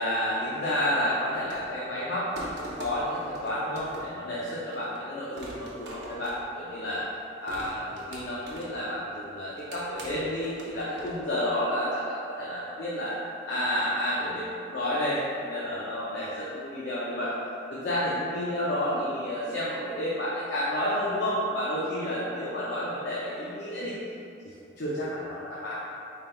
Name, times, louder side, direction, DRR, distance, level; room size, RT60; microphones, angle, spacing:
voice 1, 0.0-7.0 7.4-13.1 13.5-17.3 17.7-24.0 24.8-25.7, left 1 dB, 65° left, -8 dB, 0.5 m, -30 dB
sound 1, 1.3-1.9 2.4-4.3 4.7-5.0 5.4-7.0 7.5-8.9 9.4-11.3, right 1 dB, 65° right, 0.7 m, -44 dB
4.3 x 3.3 x 2.2 m, 2.7 s
head